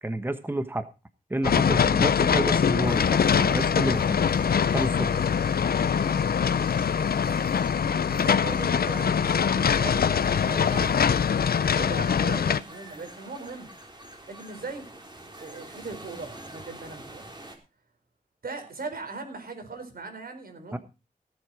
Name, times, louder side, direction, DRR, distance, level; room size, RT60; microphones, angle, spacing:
voice 1, 0.0-0.9 1.3-4.4 4.7-5.2 20.7-20.8, right 1 dB, 15° right, 10 dB, 1.2 m, -30 dB
sound 1, 1.4-12.6, left 7 dB, 85° left, 0.6 m, -23 dB
sound 2, 2.9-17.6, right 1 dB, 30° right, 3.7 m, -46 dB
voice 2, 8.1-11.0 11.6-13.7 14.3-14.9 15.4-17.3 18.4-20.8, right 3 dB, 80° right, 6 dB, 4.5 m, -39 dB
17.5 x 7.9 x 4.9 m, 0.30 s
wide cardioid pair, 70°, 15 cm